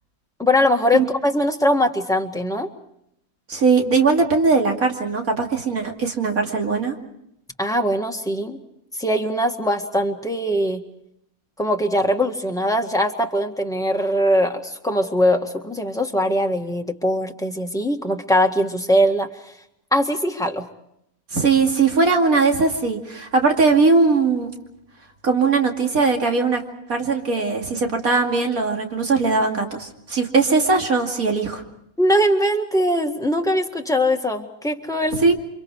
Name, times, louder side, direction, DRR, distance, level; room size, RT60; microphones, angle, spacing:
voice 1, 0.4-2.7 7.6-8.6 9.0-10.8 11.6-19.3 19.9-20.6 32.0-35.2, equal, ahead, 2 dB, 1.8 m, -21 dB
voice 2, 3.5-7.0 21.3-24.5 25.2-26.6 26.9-31.6 35.2-35.3, right 4 dB, 80° right, 2 dB, 3.0 m, -19 dB
29.5 x 25.0 x 4.8 m, 0.78 s
omnidirectional pair, 1.5 m